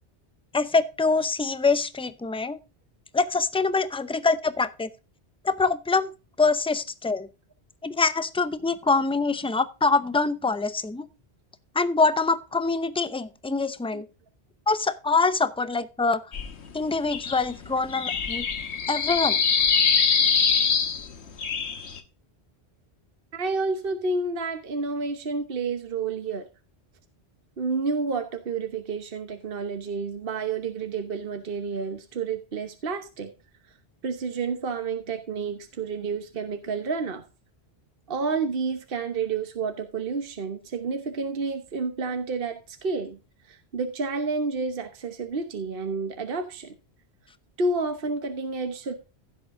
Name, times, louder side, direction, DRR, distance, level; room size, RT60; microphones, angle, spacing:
voice 1, 0.5-2.6 3.1-4.9 5.4-6.1 6.4-7.3 7.8-11.1 11.7-14.1 14.7-16.2 16.7-18.5 18.9-19.4, left 4 dB, 5° left, 0.5 m, -24 dB
sound 1, 16.3-16.5 16.9-21.1 21.4-22.0, left 6 dB, 80° left, 1.4 m, -24 dB
voice 2, 23.3-26.5 27.6-33.3 34.0-37.2 38.1-43.2 43.5-46.7 47.6-48.9, right 4 dB, 55° right, 1.3 m, -30 dB
15.5 x 7.8 x 2.6 m
omnidirectional pair, 1.1 m